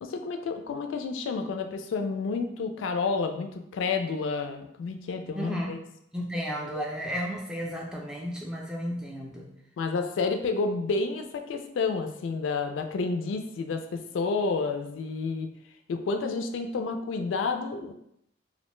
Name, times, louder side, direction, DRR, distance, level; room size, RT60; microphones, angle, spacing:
voice 1, 0.0-5.8 9.8-15.5 15.9-17.9, left 4 dB, 80° left, 6 dB, 0.3 m, -30 dB
voice 2, 5.4-5.9 6.1-9.5, equal, 5° right, -2 dB, 0.3 m, -33 dB
2.5 x 2.1 x 3.0 m, 0.75 s
head